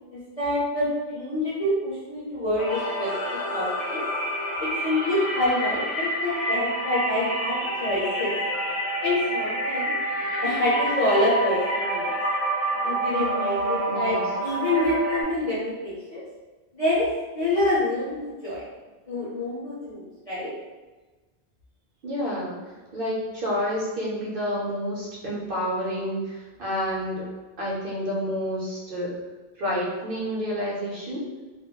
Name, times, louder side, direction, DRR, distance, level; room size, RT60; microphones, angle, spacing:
voice 1, 0.1-3.1 3.5-4.0 4.6-8.3 9.0-9.9 10.4-12.1 12.8-16.2 16.7-17.1 17.3-18.6 19.1-20.5, left 1 dB, 40° left, -8 dB, 0.7 m, -26 dB
sound 1, 2.6-15.2, right 1 dB, 70° left, 0.8 m, -28 dB
voice 2, 13.9-14.2 22.0-22.5 22.9-27.3 27.6-29.1 29.6-31.2, equal, 55° right, -5 dB, 0.8 m, -29 dB
2.3 x 2.0 x 3.6 m, 1.2 s
omnidirectional pair, 1.1 m